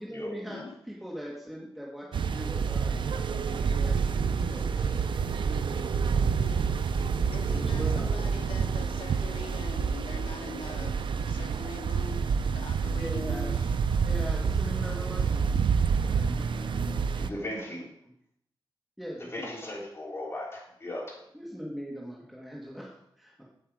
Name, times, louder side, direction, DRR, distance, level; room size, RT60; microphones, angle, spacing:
voice 1, 0.0-5.8 7.5-8.3 12.9-13.5 13.8-15.6 16.0-17.4 18.0-18.1 19.0-19.5 21.3-23.4, equal, ahead, -4 dB, 1.6 m, -41 dB
sound 1, 2.1-17.3, right 6 dB, 65° right, 0.5 m, -28 dB
Drum, 3.7-15.3, left 3 dB, 55° left, 4.0 m, -54 dB
voice 2, 7.3-10.9 11.3-13.6, left 4 dB, 75° left, 4 dB, 0.9 m, -43 dB
voice 3, 17.2-17.8 19.3-21.2, left 1 dB, 30° left, -4 dB, 3.5 m, -37 dB
8.2 x 7.9 x 4.8 m, 0.72 s
wide cardioid pair, 130°, 9 cm